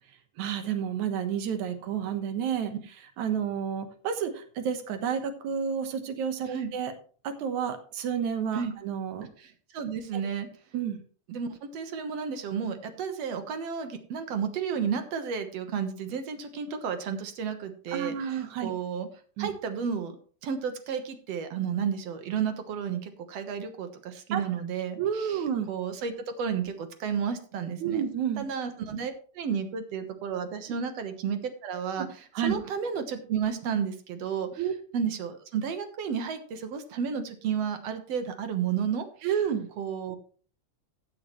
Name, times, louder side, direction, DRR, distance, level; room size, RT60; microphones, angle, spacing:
voice 1, 0.4-2.7 3.2-6.9 7.2-9.3 10.7-11.0 17.9-18.7 19.4-19.5 24.3-24.4 25.0-25.7 27.8-28.4 32.3-32.5 34.6-34.7 39.2-39.7, right 8 dB, 80° right, 8 dB, 2.6 m, -30 dB
voice 2, 9.7-10.5 11.3-19.1 19.4-20.2 20.4-25.4 25.7-28.0 28.4-32.1 32.4-34.6 34.9-39.1 39.8-40.2, right 7 dB, 65° right, 8 dB, 2.2 m, -32 dB
15.5 x 8.7 x 3.1 m, 0.41 s
omnidirectional pair, 3.3 m